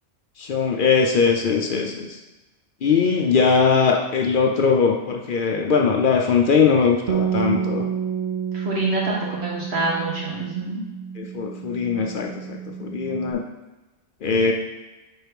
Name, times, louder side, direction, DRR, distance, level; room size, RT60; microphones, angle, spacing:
voice 1, 0.4-2.2 2.8-7.9 11.2-13.4 14.2-14.5, left 5 dB, 60° left, 2 dB, 0.7 m, -20 dB
Bass guitar, 7.1-13.3, right 8 dB, 85° right, 1.0 m, -29 dB
voice 2, 8.5-10.8, right 2 dB, 70° right, -4 dB, 1.8 m, -26 dB
4.7 x 4.4 x 5.0 m, 1.1 s
omnidirectional pair, 1.1 m